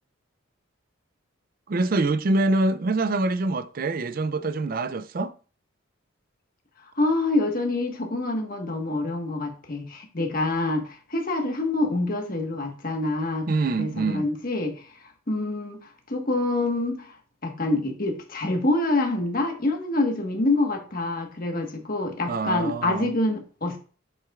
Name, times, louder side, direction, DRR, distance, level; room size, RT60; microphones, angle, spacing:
voice 1, 1.7-5.3 13.5-14.3 22.3-23.1, right 2 dB, 45° right, 0.4 m, -25 dB
voice 2, 7.0-13.5 13.8-14.8 15.3-17.2 17.4-23.8, left 2 dB, 45° left, 1.4 m, -26 dB
7.7 x 7.5 x 2.4 m
head